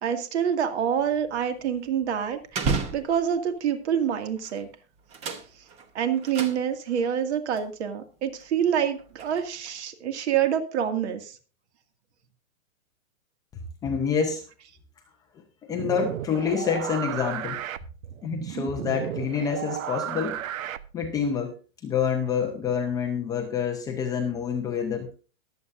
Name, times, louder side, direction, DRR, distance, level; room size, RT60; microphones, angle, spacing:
voice 1, 0.0-4.7 5.9-11.3, right 8 dB, 55° right, 7 dB, 2.2 m, -27 dB
sound 1, 0.9-3.6 4.3-4.7 5.0-7.1 7.5-7.7 8.3-9.8, right 4 dB, 15° right, 0.9 m, -34 dB
voice 2, 13.8-14.4 15.6-17.6 18.2-20.4 20.9-21.6 21.8-25.1, left 7 dB, 10° left, 2 dB, 0.6 m, -27 dB
sound 2, 15.7-21.3, right 11 dB, 75° right, 0.9 m, -34 dB
22.0 x 8.0 x 2.5 m, 0.35 s
hypercardioid pair, 160°, 41 cm